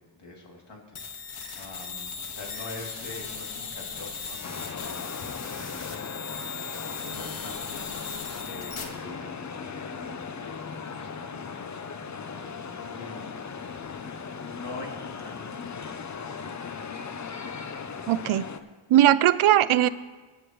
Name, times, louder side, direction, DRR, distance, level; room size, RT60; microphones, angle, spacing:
voice 1, 0.0-6.0 6.3-7.9 8.4-13.7 14.4-17.0, left 2 dB, 55° left, -2 dB, 2.9 m, -45 dB
sound 1, 1.0-8.8, left 5 dB, 85° left, 1.7 m, -38 dB
sound 2, 4.4-18.6, left 5 dB, 35° left, 0.6 m, -38 dB
voice 2, 18.1-18.5 18.9-19.9, right 12 dB, 80° right, 16 dB, 0.5 m, -19 dB
22.5 x 8.2 x 3.1 m, 1.3 s
wide cardioid pair, 160°, 49 cm